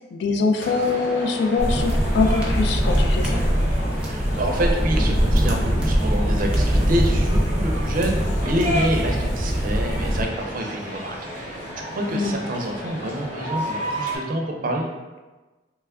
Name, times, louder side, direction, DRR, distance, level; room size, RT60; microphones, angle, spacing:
voice 1, 0.1-3.4 12.1-12.3, left 4 dB, 65° left, 4 dB, 0.3 m, -23 dB
sound 1, 0.6-14.2, equal, 85° left, 1.3 m, -33 dB
sound 2, 1.6-10.2, equal, 5° right, 0.6 m, -22 dB
voice 2, 4.0-14.9, right 1 dB, 50° right, 1 dB, 0.5 m, -27 dB
3.1 x 2.3 x 3.4 m, 1.2 s
head